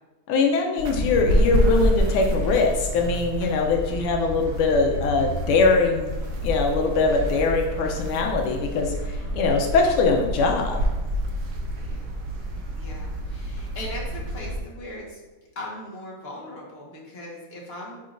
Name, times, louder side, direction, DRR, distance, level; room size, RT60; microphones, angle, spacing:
voice 1, 0.3-6.1 6.4-10.8, left 3 dB, 85° left, 2 dB, 1.6 m, -22 dB
sound 1, 0.8-14.6, equal, 60° right, 1.1 m, -28 dB
voice 2, 4.2-4.6 7.1-7.2 9.2-9.6 11.7-12.1 12.7-15.2 15.5-18.0, left 1 dB, 35° left, -4 dB, 1.3 m, -39 dB
9.9 x 3.8 x 2.5 m, 1.2 s
omnidirectional pair, 2.4 m